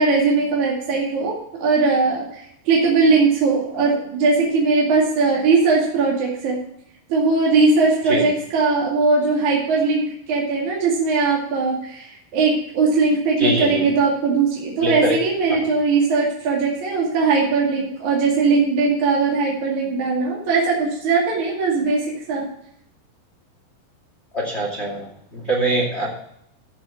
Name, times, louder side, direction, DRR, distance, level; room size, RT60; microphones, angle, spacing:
voice 1, 0.0-6.6 7.1-22.5, right 4 dB, 50° right, -3 dB, 3.4 m, -19 dB
voice 2, 13.4-13.8 14.8-15.2 15.5-15.6 24.3-25.0 25.3-26.1, right 2 dB, 20° left, -1 dB, 1.9 m, -23 dB
15.0 x 6.3 x 5.8 m, 0.74 s
omnidirectional pair, 5.0 m